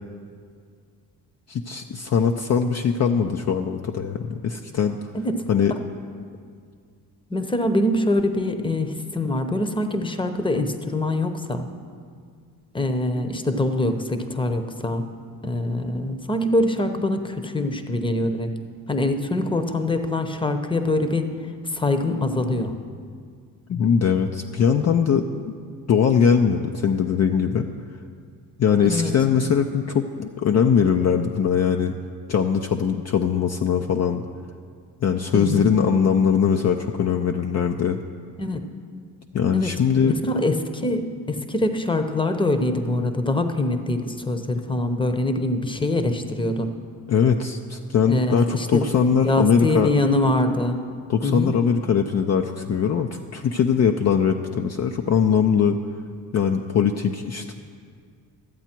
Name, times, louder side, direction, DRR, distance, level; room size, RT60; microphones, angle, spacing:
voice 1, 1.5-5.0 5.5-5.7 23.7-25.5 25.9-27.7 28.6-31.9 32.3-34.2 35.0-38.0 39.3-40.1 47.1-49.9 51.1-55.8 56.3-57.5, left 7 dB, 40° left, 5 dB, 0.6 m, -21 dB
voice 2, 7.3-11.7 12.7-15.0 15.4-18.5 18.9-21.3 21.7-22.7 28.8-29.1 35.3-35.7 38.4-38.6 39.5-39.7 40.0-41.0 41.3-46.7 48.1-48.8 49.2-50.8 51.2-51.5, left 1 dB, 10° left, 8 dB, 0.9 m, -24 dB
13.0 x 8.1 x 4.5 m, 2.1 s
supercardioid pair, 65°, 40 cm